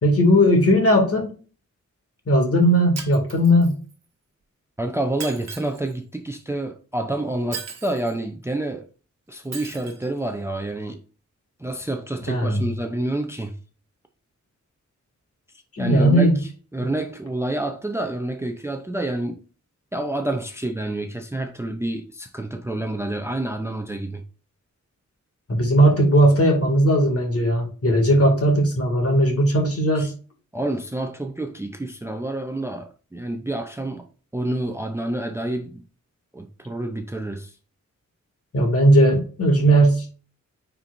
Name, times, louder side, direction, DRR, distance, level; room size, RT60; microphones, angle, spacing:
voice 1, 0.0-1.3 2.3-3.7 12.3-12.6 15.7-16.4 25.5-30.1 38.5-40.1, equal, 50° left, 2.3 m, -17 dB
Shatter, 3.0-3.9 5.2-5.9 7.5-8.2 9.5-10.1, right 6 dB, 60° right, 1.2 m, -37 dB
voice 2, 4.8-8.9 9.3-11.0 11.6-13.5 15.8-19.4 19.9-24.2 30.0-30.1 30.5-34.1 34.3-35.8 36.3-37.5, right 1 dB, 10° right, 0.6 m, -28 dB
9.2 x 4.5 x 2.6 m
wide cardioid pair, 170°, 30 cm